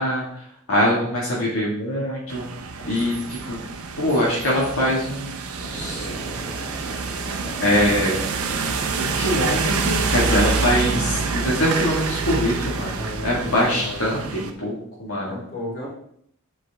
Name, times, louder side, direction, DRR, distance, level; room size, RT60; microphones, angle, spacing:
voice 1, 0.0-2.5 2.8-3.6 4.0-5.4 5.7-6.1 7.6-8.2 9.0-12.9 13.2-14.7 15.0-15.4, equal, 70° left, -5 dB, 1.8 m, -23 dB
sound 1, 2.3-14.5, right 4 dB, 75° right, 0.8 m, -27 dB
sound 2, 5.6-11.7, right 1 dB, 20° left, 1.8 m, -36 dB
voice 2, 12.9-14.0 15.3-15.9, left 1 dB, 35° left, -6 dB, 2.8 m, -33 dB
8.1 x 4.5 x 3.5 m, 0.68 s
head